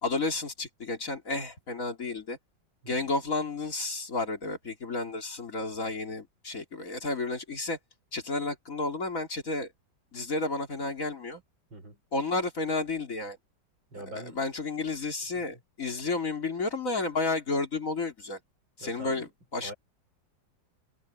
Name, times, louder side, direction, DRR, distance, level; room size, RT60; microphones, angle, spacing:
voice 1, 0.0-2.4 2.9-7.8 8.1-9.7 10.1-11.4 12.1-13.4 13.9-18.4 18.8-19.7, left 3 dB, 45° left, 3.4 m, -32 dB
voice 2, 13.9-14.4 18.8-19.3 19.6-19.7, right 1 dB, 90° right, 6.9 m, -43 dB
omnidirectional pair, 2.0 m